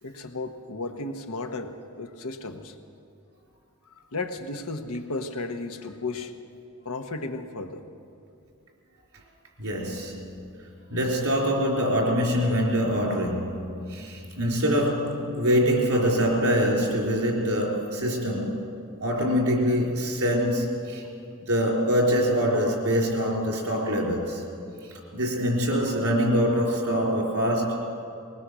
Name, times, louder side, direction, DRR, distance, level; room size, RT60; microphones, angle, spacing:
voice 1, 0.0-2.7 3.9-6.3 6.8-7.8, left 3 dB, 85° left, 1.2 m, -34 dB
voice 2, 9.6-10.4 10.9-18.7 19.0-21.0 21.4-24.4 24.9-27.9, equal, 80° right, 3.8 m, -24 dB
21.0 x 20.0 x 6.3 m
head